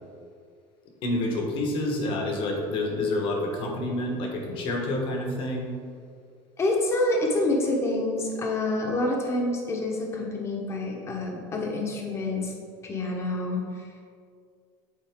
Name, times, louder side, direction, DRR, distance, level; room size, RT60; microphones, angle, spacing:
voice 1, 1.0-5.7, left 1 dB, 50° left, 1 dB, 1.2 m, -28 dB
voice 2, 6.6-12.5 12.8-13.8, left 2 dB, 25° left, 0 dB, 1.0 m, -27 dB
8.7 x 4.2 x 3.6 m, 2.2 s
cardioid pair, 155°, 12 cm